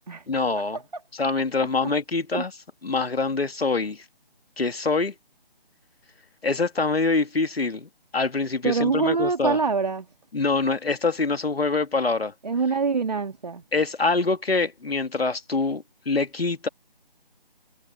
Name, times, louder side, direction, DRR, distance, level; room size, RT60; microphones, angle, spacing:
voice 1, 0.3-0.8 1.1-2.5 2.8-4.0 4.6-5.1 6.4-9.6 10.3-12.3 13.7-16.7, left 3 dB, 85° left, 2.3 m, -25 dB
voice 2, 8.6-10.1 12.4-13.6, right 4 dB, 45° right, 2.3 m, -24 dB
figure-of-eight pair, 175°, 29 cm